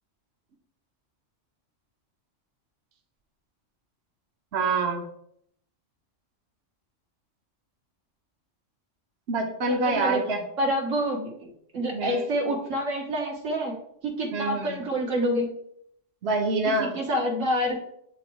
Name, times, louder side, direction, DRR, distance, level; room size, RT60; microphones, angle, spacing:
voice 1, 4.5-5.0 9.3-10.4 11.9-12.2 14.3-14.8 16.2-17.0, right 3 dB, 60° right, 2 dB, 1.0 m, -26 dB
voice 2, 9.8-10.2 10.6-11.5 11.7-13.7 14.0-15.5 16.9-17.8, equal, 80° right, 0 dB, 1.6 m, -27 dB
9.1 x 3.5 x 3.1 m, 0.70 s
omnidirectional pair, 1.3 m